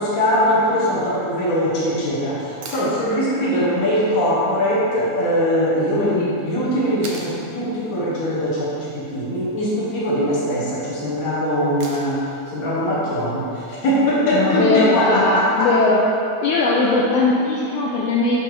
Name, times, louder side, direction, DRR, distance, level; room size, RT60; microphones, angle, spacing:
voice 1, 0.0-15.7, equal, 60° left, -7 dB, 0.8 m, -21 dB
sound 1, 2.6-2.9 5.2-5.3 7.0-7.4 9.4-9.8 11.8-12.3 14.4-14.5, right 3 dB, 70° right, 1.3 m, -37 dB
voice 2, 14.3-16.0 16.4-18.4, left 3 dB, 85° left, -4 dB, 1.4 m, -19 dB
6.1 x 5.3 x 3.8 m, 2.8 s
omnidirectional pair, 3.4 m